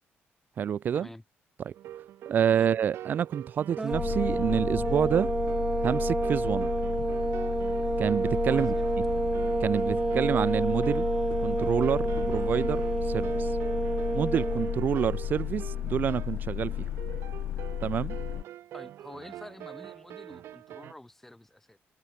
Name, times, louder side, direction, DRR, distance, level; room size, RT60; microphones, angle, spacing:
voice 1, 0.6-1.1 1.6-1.7 2.3-5.3 5.8-6.7 8.0-8.7 9.6-11.0 11.4-13.6 14.1-16.9 17.8-18.2, right 8 dB, 45° right, 1.5 m, -28 dB
sound 1, 1.7-20.9, right 12 dB, 80° right, 1.8 m, -45 dB
sound 2, 3.8-14.8, right 3 dB, 15° right, 0.4 m, -29 dB
sound 3, 3.9-18.4, left 12 dB, 75° left, 3.6 m, -34 dB
voice 2, 8.5-8.9 18.7-21.8, left 1 dB, 5° left, 6.3 m, -47 dB
cardioid pair, 170°, 4 cm